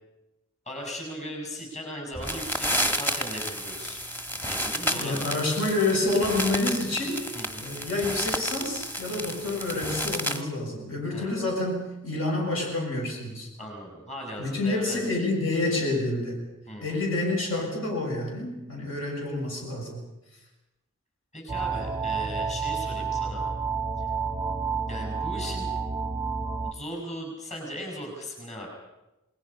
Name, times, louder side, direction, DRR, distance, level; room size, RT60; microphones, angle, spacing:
voice 1, 0.6-4.0 4.5-5.3 7.3-7.7 11.1-11.4 13.6-15.3 16.7-17.0 21.3-23.4 24.0-24.1 24.9-25.7 26.6-28.7, equal, 35° left, 0 dB, 6.4 m, -38 dB
sound 1, 2.1-10.4, equal, 10° left, 1.3 m, -31 dB
voice 2, 4.9-7.3 7.6-13.5 14.4-16.5 16.8-20.0, left 2 dB, 70° left, 0 dB, 6.4 m, -28 dB
sound 2, 21.5-26.7, right 5 dB, 15° right, 0.7 m, -30 dB
28.0 x 20.5 x 5.5 m, 0.98 s
head